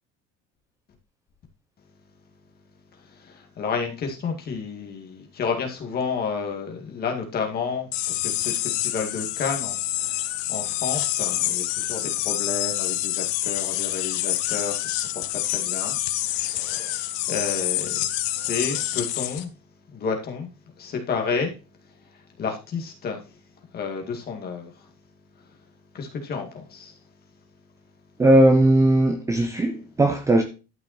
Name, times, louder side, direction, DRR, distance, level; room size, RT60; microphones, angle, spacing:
voice 1, 3.0-19.5 19.9-20.5 20.8-21.6 21.8-23.4 23.7-24.9 25.4-25.5 25.9-27.0, left 5 dB, 30° left, 2.1 m, -31 dB
sound 1, 7.9-19.4, left 15 dB, 85° left, 1.3 m, -27 dB
voice 2, 28.2-30.4, right 1 dB, 10° right, 0.7 m, -18 dB
12.0 x 5.8 x 4.3 m
cardioid pair, 180°, 33 cm